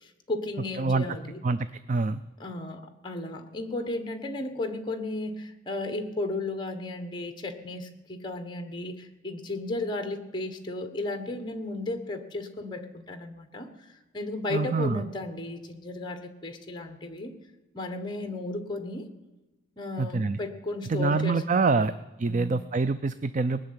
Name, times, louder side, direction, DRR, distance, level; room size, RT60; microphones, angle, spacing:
voice 1, 0.0-1.4 2.4-17.4 17.7-19.1 19.8-21.9 22.3-22.6, left 2 dB, 25° left, 7 dB, 1.4 m, -34 dB
voice 2, 0.8-1.2 1.4-2.2 14.5-15.0 20.0-20.4 20.9-21.9 22.2-23.6, right 4 dB, 40° right, 12 dB, 0.4 m, -26 dB
19.5 x 6.6 x 9.8 m, 1.1 s
head